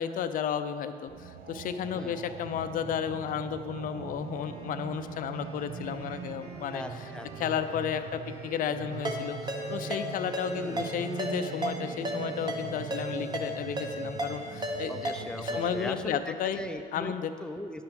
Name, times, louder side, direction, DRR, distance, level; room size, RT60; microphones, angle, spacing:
voice 1, 0.0-6.8 7.4-15.1 15.4-16.6 16.9-17.3, left 8 dB, 55° left, 9 dB, 0.5 m, -33 dB
sound 1, 1.1-16.1, right 7 dB, 60° right, 0.7 m, -42 dB
Wind instrument woodwind instrument, 4.2-12.9, right 1 dB, 40° right, 1.3 m, -51 dB
voice 2, 6.7-7.3 10.5-10.9 14.9-17.1 17.4-17.8, left 1 dB, 5° left, 6 dB, 0.6 m, -39 dB
Ringtone, 9.0-15.9, equal, 25° right, 1.2 m, -35 dB
10.5 x 5.8 x 5.3 m, 2.2 s
cardioid pair, 110°, 17 cm